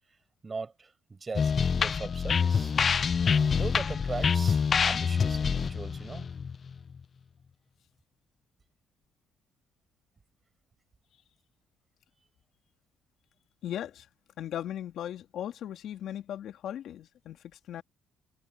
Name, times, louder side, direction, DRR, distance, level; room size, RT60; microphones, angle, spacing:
voice 1, 0.4-2.7 3.5-6.3, right 4 dB, 30° right, 7.5 m, -39 dB
sound 1, 1.3-7.0, left 6 dB, 40° left, 0.3 m, -26 dB
voice 2, 13.6-14.1 14.4-17.8, left 11 dB, 70° left, 3.0 m, -38 dB
cardioid pair, 100°, 0 cm